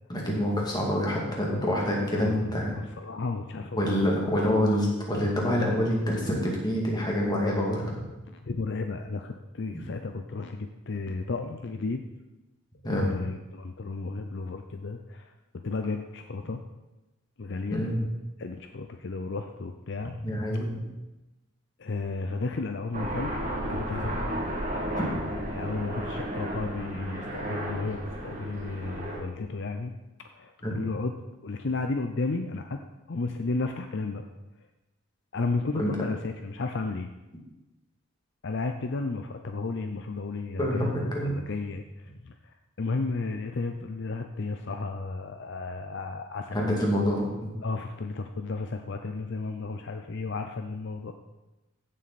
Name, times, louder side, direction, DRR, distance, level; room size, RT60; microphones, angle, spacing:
voice 1, 0.1-2.7 3.7-7.8 9.7-9.8 12.8-13.1 17.7-17.9 20.2-20.7 25.0-25.1 30.6-30.7 35.8-35.9 40.6-41.3 46.5-47.3, equal, 20° left, -2 dB, 2.5 m, -26 dB
voice 2, 1.5-1.8 2.1-3.9 8.3-12.0 12.8-16.6 17.4-17.8 18.4-20.1 21.8-23.4 23.7-24.5 25.5-29.9 30.3-31.1 31.4-32.8 33.1-34.3 35.3-37.1 38.4-40.9 41.2-42.3 42.8-46.8 47.6-51.1, left 3 dB, 55° left, 6 dB, 0.6 m, -33 dB
Aircraft, 22.9-29.2, right 1 dB, 35° right, 2.2 m, -33 dB
15.0 x 7.5 x 4.2 m, 1.0 s
head